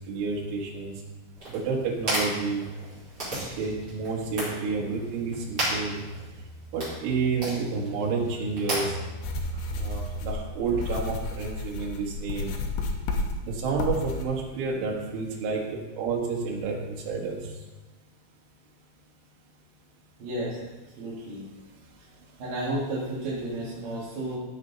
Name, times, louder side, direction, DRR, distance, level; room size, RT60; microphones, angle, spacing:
voice 1, 0.1-0.9 1.5-2.6 3.6-6.0 6.7-8.9 9.7-12.5 13.4-17.4, right 4 dB, 80° right, -1 dB, 4.0 m, -30 dB
sound 1, 1.4-10.4, right 1 dB, 20° right, 4.4 m, -35 dB
sound 2, 9.2-14.3, left 3 dB, 75° left, 3.0 m, -32 dB
voice 2, 20.2-20.7 21.0-21.5 22.4-24.4, right 1 dB, 55° right, -9 dB, 3.3 m, -32 dB
15.5 x 6.8 x 4.0 m, 1.2 s
omnidirectional pair, 5.5 m